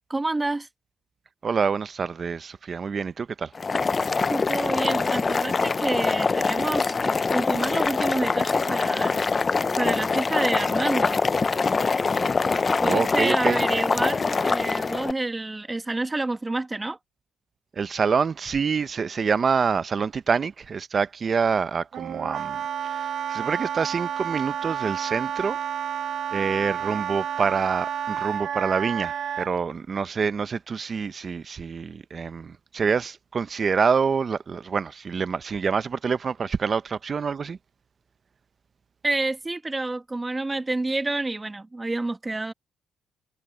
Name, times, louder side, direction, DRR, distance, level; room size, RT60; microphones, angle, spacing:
voice 1, 0.1-0.7 4.3-9.1 9.8-11.2 12.8-17.0 39.0-42.5, right 2 dB, 20° right, 1.7 m, -28 dB
voice 2, 1.4-3.5 12.8-13.6 17.7-25.6 26.3-37.6, right 5 dB, 40° right, 0.7 m, -26 dB
Boiling, 3.5-15.1, left 4 dB, 30° left, 0.4 m, -24 dB
Wind instrument woodwind instrument, 21.9-29.5, right 9 dB, 65° right, 1.2 m, -30 dB
cardioid pair, 90°, 0 cm